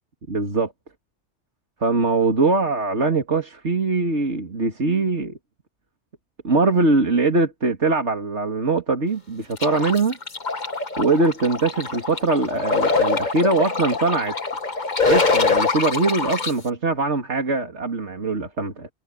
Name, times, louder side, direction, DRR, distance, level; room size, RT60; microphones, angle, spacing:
voice 1, 0.3-0.7 1.8-5.4 6.4-10.2 11.0-14.3 15.1-18.9, right 3 dB, 70° right, 3.0 m, -22 dB
sound 1, 9.6-16.5, left 4 dB, 40° left, 1.6 m, -23 dB
omnidirectional pair, 1.2 m